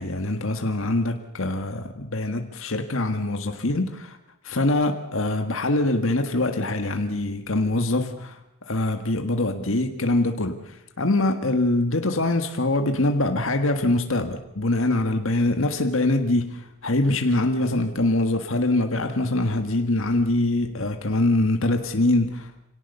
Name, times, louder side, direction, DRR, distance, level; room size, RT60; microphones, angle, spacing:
voice 1, 0.0-4.2 4.4-22.5, left 2 dB, 70° left, 6 dB, 1.6 m, -24 dB
26.5 x 18.0 x 6.7 m, 0.82 s
head